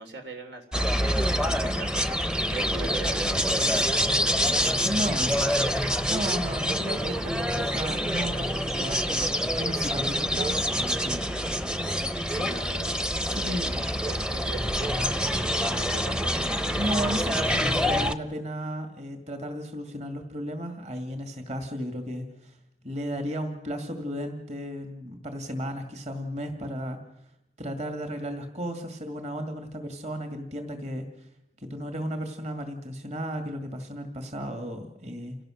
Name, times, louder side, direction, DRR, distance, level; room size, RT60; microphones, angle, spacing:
voice 1, 0.0-2.0 2.5-5.8 12.3-12.9 13.3-13.7 14.0-16.4, right 3 dB, 85° right, 5 dB, 3.2 m, -42 dB
sound 1, 0.7-18.1, equal, 5° right, 0.7 m, -26 dB
voice 2, 4.8-5.5 6.1-11.3 13.3-14.0 16.8-22.5 22.8-27.0 27.6-31.0 31.6-35.4, equal, 40° right, 5 dB, 2.4 m, -34 dB
28.5 x 18.0 x 6.5 m, 0.87 s
head